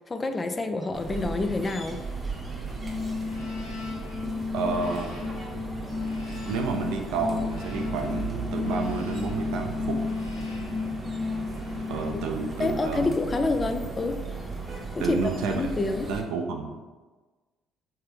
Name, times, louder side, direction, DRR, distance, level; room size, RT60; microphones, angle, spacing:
voice 1, 0.1-2.0 12.1-12.2 12.6-14.2 15.0-15.2 15.6-16.1, left 3 dB, 30° left, 7 dB, 0.4 m, -27 dB
sound 1, 0.9-16.2, right 4 dB, 25° right, 0.8 m, -36 dB
sound 2, 2.8-12.7, left 4 dB, 70° left, 0.8 m, -33 dB
voice 2, 4.5-5.1 6.4-10.0 11.9-13.2 15.0-16.8, right 4 dB, 65° right, 3 dB, 0.5 m, -30 dB
3.3 x 3.3 x 3.1 m, 1.3 s
figure-of-eight pair, 50°, 0 cm